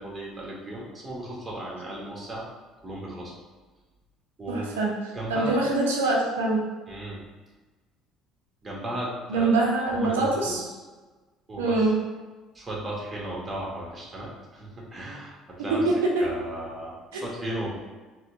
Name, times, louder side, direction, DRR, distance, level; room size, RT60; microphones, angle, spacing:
voice 1, 0.0-2.4 2.8-3.3 4.4-4.7 5.1-5.6 6.9-7.2 8.6-10.7 11.5-11.8 12.5-15.9 16.2-17.7, right 1 dB, 25° right, -4 dB, 1.3 m, -35 dB
voice 2, 4.5-4.9 5.3-6.6 9.3-10.6 11.6-11.9 16.1-16.2 17.1-17.3, right 2 dB, 85° right, -2 dB, 0.6 m, -24 dB
4.2 x 2.2 x 2.7 m, 1.3 s
hypercardioid pair, 60°, 0 cm